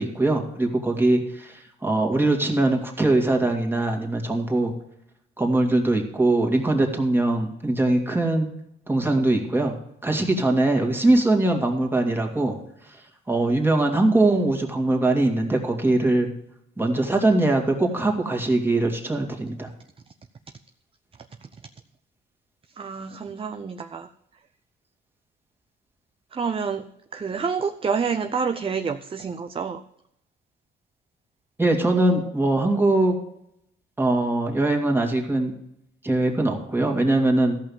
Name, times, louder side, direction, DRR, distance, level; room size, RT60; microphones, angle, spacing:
voice 1, 0.0-4.7 5.4-8.5 8.9-9.8 10.0-12.6 13.3-16.3 16.8-19.7 31.6-33.2 34.0-35.5 36.0-37.6, right 2 dB, 10° right, 2 dB, 2.3 m, -22 dB
voice 2, 22.8-24.1 26.3-26.8 27.1-29.8, right 5 dB, 25° right, 8 dB, 0.6 m, -28 dB
14.0 x 5.7 x 7.1 m, 0.78 s
cardioid pair, 90°, 20 cm